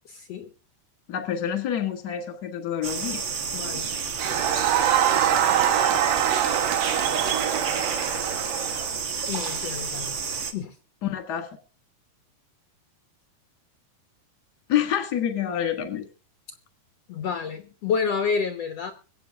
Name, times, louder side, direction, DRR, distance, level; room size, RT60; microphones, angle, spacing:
voice 1, 0.1-0.5 3.5-3.9 9.3-10.2 10.5-10.7 17.1-18.9, left 6 dB, 85° left, 7 dB, 1.4 m, -29 dB
voice 2, 1.1-3.2 11.0-11.5 14.7-16.1, left 9 dB, 50° left, 8 dB, 1.2 m, -27 dB
sound 1, 2.8-10.5, right 6 dB, 90° right, 1.0 m, -30 dB
Crowd, 4.2-9.0, right 10 dB, 60° right, 2.7 m, -24 dB
23.5 x 8.3 x 3.6 m, 0.34 s
omnidirectional pair, 4.8 m